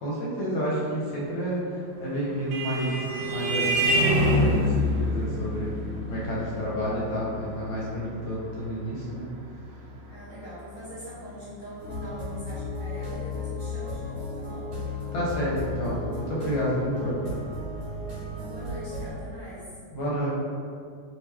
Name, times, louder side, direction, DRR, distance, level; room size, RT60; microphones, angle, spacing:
voice 1, 0.0-2.9 3.3-5.7 6.1-9.2 15.1-17.3 19.9-20.3, equal, 70° left, -6 dB, 1.5 m, -30 dB
Vehicle horn car horn honking, 1.9-10.9, equal, 80° right, 1.4 m, -28 dB
voice 2, 10.1-14.7 18.3-19.6, equal, 65° right, -12 dB, 0.4 m, -42 dB
sound 1, 11.8-19.1, left 3 dB, 50° right, 1.4 m, -34 dB
3.4 x 3.0 x 3.4 m, 2.2 s
omnidirectional pair, 2.3 m